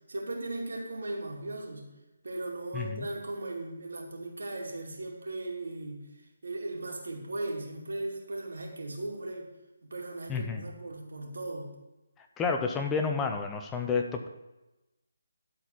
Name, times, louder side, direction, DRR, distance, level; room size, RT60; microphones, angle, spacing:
voice 1, 0.1-1.9 2.2-6.0 6.4-9.5 9.8-11.7, right 2 dB, 80° right, -1 dB, 2.4 m, -37 dB
voice 2, 2.7-3.1 10.3-10.6 12.4-14.3, left 5 dB, 10° left, 4 dB, 0.5 m, -30 dB
12.0 x 4.2 x 6.1 m, 1.0 s
hypercardioid pair, 165°, 0 cm